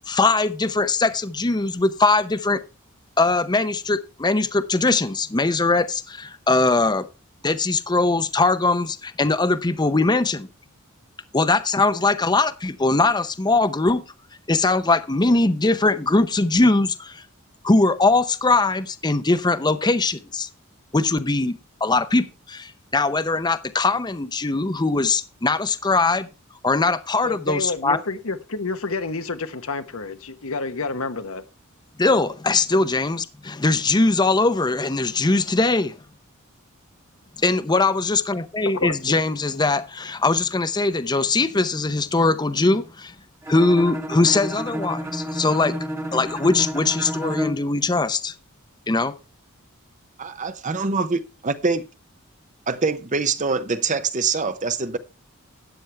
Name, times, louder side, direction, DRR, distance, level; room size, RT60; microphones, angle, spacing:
voice 1, 0.1-2.6 3.2-7.1 7.4-10.5 11.3-14.0 14.5-17.2 17.6-20.5 20.9-26.3 26.6-28.0 32.0-36.0 37.4-43.1 43.5-45.7 46.1-48.3 48.9-49.1, left 3 dB, 20° left, 0.7 m, -21 dB
voice 2, 27.2-31.4 38.7-39.2, left 3 dB, 70° left, 1.1 m, -29 dB
Bowed string instrument, 43.4-47.7, equal, 10° right, 1.3 m, -30 dB
voice 3, 50.2-51.8 52.7-55.0, right 4 dB, 35° right, 0.8 m, -24 dB
13.0 x 9.1 x 3.4 m
head